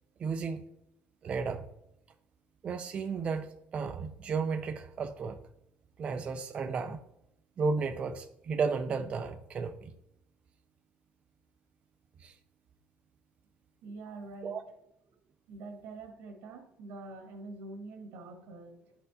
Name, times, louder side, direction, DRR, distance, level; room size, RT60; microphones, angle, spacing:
voice 1, 0.2-0.6 1.2-1.6 2.6-5.4 6.0-7.0 7.6-9.9 12.2-12.3 14.4-14.6, right 5 dB, 25° right, 6 dB, 0.3 m, -33 dB
voice 2, 13.8-14.6 15.5-18.9, right 3 dB, 80° right, 4 dB, 1.4 m, -45 dB
12.0 x 4.3 x 2.7 m, 0.80 s
cardioid pair, 180°, 4 cm